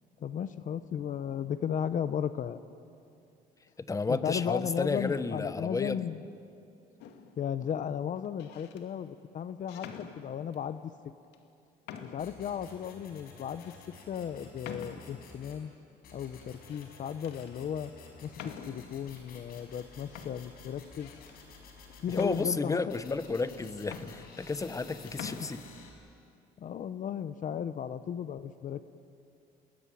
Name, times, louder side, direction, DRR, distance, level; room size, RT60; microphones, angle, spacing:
voice 1, 0.2-2.6 4.1-6.2 7.4-11.1 12.0-15.7 16.1-17.9 18.2-21.1 22.0-23.0 25.4-25.5 26.6-28.9, left 8 dB, 50° left, 12 dB, 0.9 m, -35 dB
voice 2, 3.8-6.1 22.1-25.6, left 3 dB, 20° left, 12 dB, 1.2 m, -32 dB
sound 1, 7.0-7.4 8.2-8.8 9.7-10.7 11.3-11.4 11.9-12.4 12.9-13.0 13.6-13.8 14.6-15.3 16.4-16.9 17.2-17.5 18.3-19.0 19.8-19.9 20.1-21.4 22.1-23.0 23.5-23.6 23.8-24.8 25.1-25.4, left 7 dB, 85° left, 2.3 m, -46 dB
sound 2, 12.2-15.6 16.0-22.5 22.9-25.9, left 4 dB, 65° left, 5.6 m, -52 dB
29.0 x 20.0 x 9.3 m, 2.5 s
cardioid pair, 110°, 17 cm